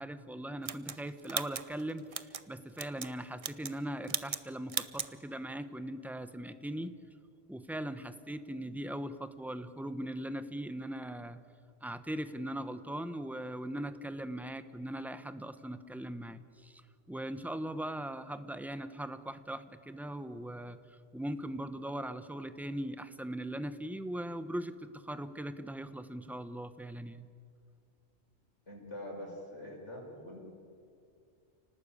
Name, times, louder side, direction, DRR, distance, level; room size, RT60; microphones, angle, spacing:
voice 1, 0.0-7.0 7.5-11.4 11.8-16.8 17.1-20.8 21.1-27.3, right 1 dB, ahead, 11 dB, 0.9 m, -40 dB
sound 1, 0.6-2.4 2.8-3.1 3.4-3.8 4.1-4.4 4.7-5.1, right 5 dB, 35° right, 0.7 m, -37 dB
voice 2, 28.7-30.4, left 1 dB, 80° left, -1 dB, 6.2 m, -44 dB
29.5 x 19.0 x 8.8 m, 2.4 s
omnidirectional pair, 1.2 m